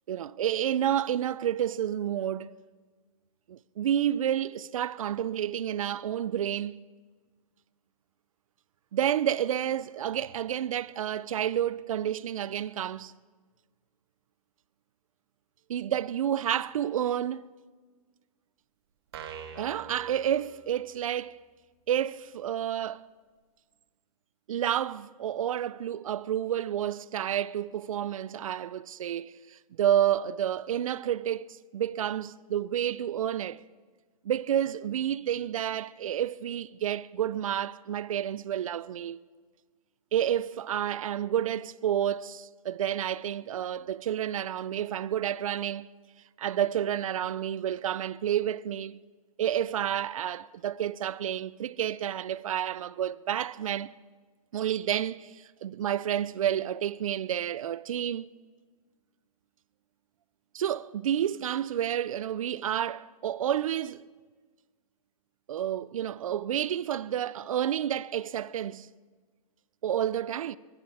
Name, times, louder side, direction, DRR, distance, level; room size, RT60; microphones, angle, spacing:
voice 1, 0.1-2.5 3.5-6.8 8.9-13.1 15.7-17.5 19.6-21.4 21.9-23.1 24.5-33.6 34.2-39.2 40.1-45.9 46.4-49.0 49.4-53.9 54.5-58.3 60.5-64.0 65.5-68.9 69.8-70.6, right 10 dB, 60° right, 0.4 m, -30 dB
sound 1, 19.1-21.1, right 7 dB, 40° right, 1.3 m, -44 dB
22.5 x 10.5 x 4.8 m
hypercardioid pair, 175°, 20 cm